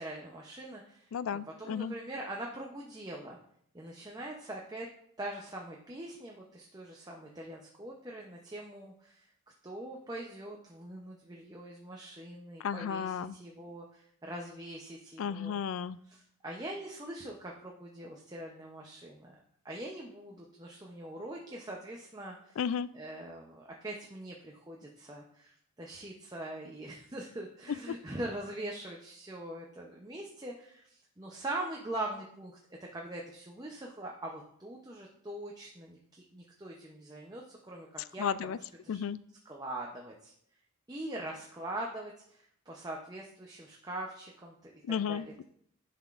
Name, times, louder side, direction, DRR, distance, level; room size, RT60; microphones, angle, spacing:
voice 1, 0.0-1.1 1.6-3.4 3.7-4.9 5.2-9.3 9.6-15.6 16.1-19.3 19.6-22.6 22.9-32.6 32.9-38.6 38.8-39.0 39.5-40.3 40.9-44.7 45.1-45.3, right 1 dB, 15° right, -1 dB, 0.6 m, -42 dB
voice 2, 1.1-1.9 12.6-13.4 15.2-16.0 22.6-22.9 38.2-38.6 38.9-39.2 44.9-45.4, left 7 dB, 70° left, 16 dB, 0.3 m, -33 dB
10.5 x 5.8 x 2.5 m, 0.67 s
head